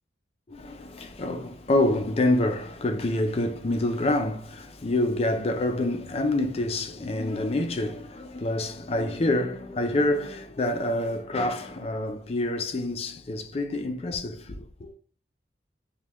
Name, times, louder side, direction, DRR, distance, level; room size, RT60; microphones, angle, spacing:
voice 1, 0.5-14.9, left 1 dB, 35° left, 0.4 m, -27 dB
5.1 x 2.2 x 2.9 m
head